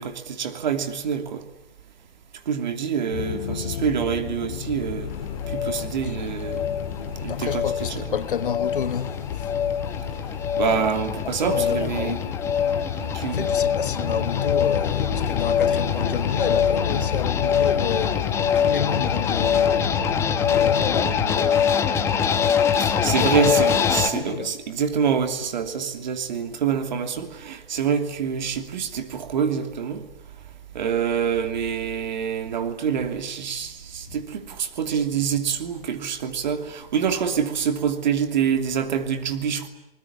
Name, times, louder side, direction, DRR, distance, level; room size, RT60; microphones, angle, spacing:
voice 1, 0.0-1.4 2.5-5.1 5.5-6.6 7.2-7.7 8.0-8.1 10.6-12.2 13.0-13.5 22.8-30.0 30.7-39.7, right 7 dB, 50° right, 2.9 m, -26 dB
sound 1, 3.1-21.3, left 8 dB, 35° left, 2.3 m, -31 dB
sound 2, 5.1-24.1, left 7 dB, 10° left, 1.2 m, -24 dB
voice 2, 7.3-9.5 11.3-12.7 13.3-22.7 23.0-23.6 24.0-24.5 34.1-34.2, left 8 dB, 60° left, 1.4 m, -31 dB
29.0 x 20.0 x 10.0 m
hypercardioid pair, 155°, 30 cm